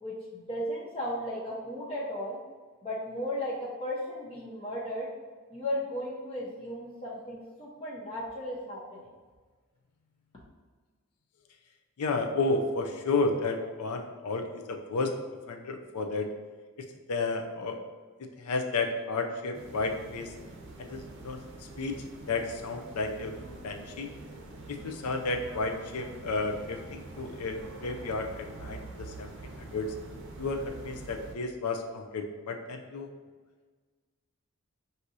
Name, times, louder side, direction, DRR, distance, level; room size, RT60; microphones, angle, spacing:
voice 1, 0.0-2.4 2.8-5.1 5.5-9.1, left 1 dB, 25° left, -7 dB, 0.6 m, -35 dB
voice 2, 12.0-15.1 15.5-16.3 17.1-17.8 18.2-20.3 20.8-21.4 21.8-21.9 22.3-23.3 23.6-24.1 24.7-29.3 29.6-30.0 30.4-33.1, left 3 dB, 85° left, 4 dB, 0.5 m, -32 dB
sound 1, 19.5-31.4, right 2 dB, 50° right, 0.6 m, -45 dB
6.0 x 2.7 x 2.7 m, 1.4 s
head